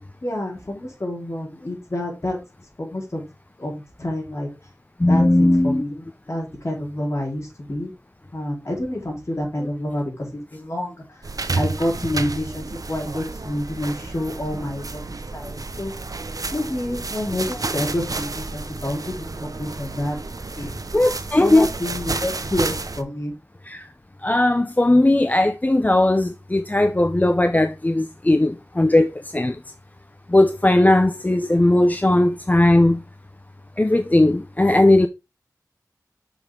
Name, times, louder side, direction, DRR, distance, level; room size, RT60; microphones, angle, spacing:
voice 1, 0.2-2.4 2.8-3.2 3.6-4.5 5.0-7.9 8.3-15.9 16.5-20.2 20.5-20.7 21.4-23.3, left 1 dB, 45° left, 3.9 m, -28 dB
voice 2, 5.0-5.8 20.9-21.7 23.7-23.9 24.2-29.6 30.3-33.0 33.8-35.1, left 1 dB, 25° left, 0.5 m, -18 dB
sound 1, 11.2-23.0, right 3 dB, 65° right, 0.7 m, -31 dB
7.0 x 5.4 x 3.7 m
wide cardioid pair, 65°, 7 cm